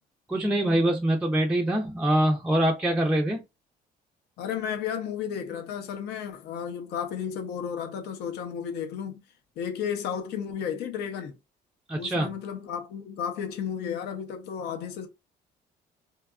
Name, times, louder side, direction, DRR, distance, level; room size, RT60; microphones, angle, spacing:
voice 1, 0.3-3.4 11.9-12.3, right 1 dB, 5° right, 0.4 m, -24 dB
voice 2, 4.4-9.2 9.6-11.4 11.9-15.1, left 8 dB, 80° left, 0.6 m, -33 dB
2.7 x 2.3 x 2.3 m
cardioid pair, 110°, 17 cm